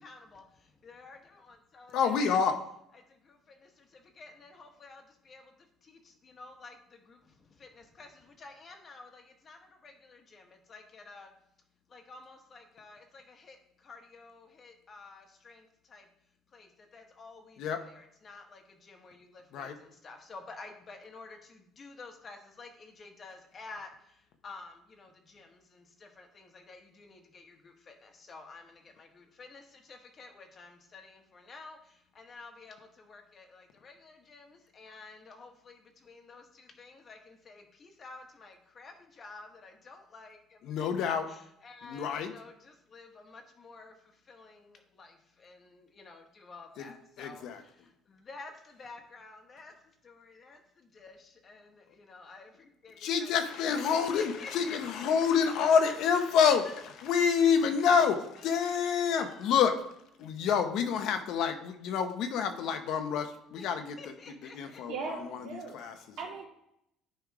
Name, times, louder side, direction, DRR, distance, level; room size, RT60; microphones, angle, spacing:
voice 1, 0.0-2.4 2.9-11.3 11.9-16.1 16.5-49.7 50.0-53.3 53.9-55.0 56.6-56.8 57.8-58.1 58.5-59.6 63.6-63.7 64.0-64.8, left 3 dB, 35° left, 5 dB, 1.2 m, -51 dB
voice 2, 1.9-2.6 17.6-17.8 19.5-19.8 40.6-41.3 41.8-42.3 46.8-46.9 47.2-47.6 53.0-59.8 60.2-64.0 64.5-66.0, left 7 dB, 65° left, 7 dB, 0.9 m, -28 dB
voice 3, 64.9-66.5, right 4 dB, 65° right, -2 dB, 2.5 m, -39 dB
10.5 x 3.5 x 4.8 m, 0.76 s
cardioid pair, 135°, 0 cm